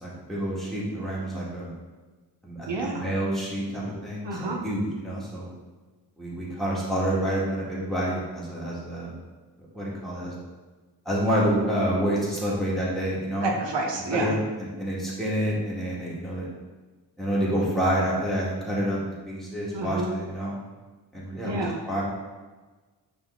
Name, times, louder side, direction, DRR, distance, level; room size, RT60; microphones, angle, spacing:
voice 1, 0.0-1.7 2.4-5.5 6.2-9.1 9.7-10.4 11.1-13.5 14.1-16.5 17.2-19.0 19.3-20.6 21.1-22.0, equal, ahead, -7 dB, 2.0 m, -28 dB
voice 2, 2.7-3.1 4.2-4.6 13.4-14.4 19.7-20.1 21.4-21.8, right 2 dB, 75° right, 0 dB, 1.1 m, -29 dB
8.9 x 3.7 x 3.9 m, 1.3 s
wide cardioid pair, 145°, 43 cm